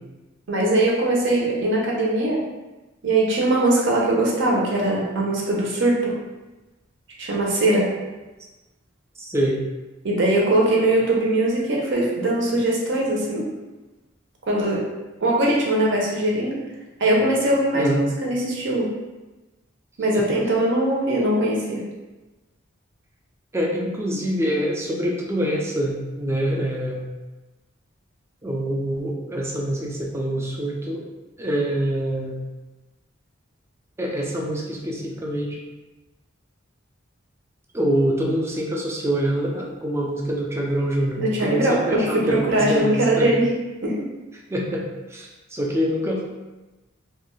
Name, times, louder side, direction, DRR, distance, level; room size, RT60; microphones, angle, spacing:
voice 1, 0.5-2.4 3.0-6.1 7.2-7.9 10.0-13.4 14.5-14.8 15.2-16.6 17.0-18.9 20.0-21.8 41.2-43.4 43.8-43.9, right 1 dB, 60° right, -3 dB, 0.6 m, -21 dB
voice 2, 9.2-9.6 17.7-18.1 20.1-20.3 21.2-21.3 23.5-27.1 28.4-31.1 31.4-32.4 34.0-35.6 37.7-43.3 44.5-46.2, right 1 dB, 15° right, -1 dB, 0.3 m, -25 dB
2.5 x 2.2 x 3.0 m, 1.1 s
head